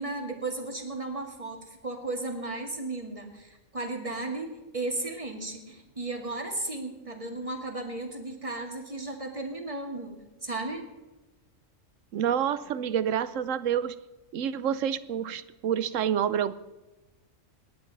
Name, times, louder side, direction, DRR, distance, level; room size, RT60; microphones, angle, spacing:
voice 1, 0.0-10.1 10.4-10.8, right 2 dB, 25° right, 2 dB, 2.1 m, -35 dB
voice 2, 12.1-13.9 14.3-16.5, right 9 dB, 75° right, 15 dB, 1.0 m, -28 dB
27.5 x 10.0 x 4.0 m, 1.1 s
omnidirectional pair, 1.4 m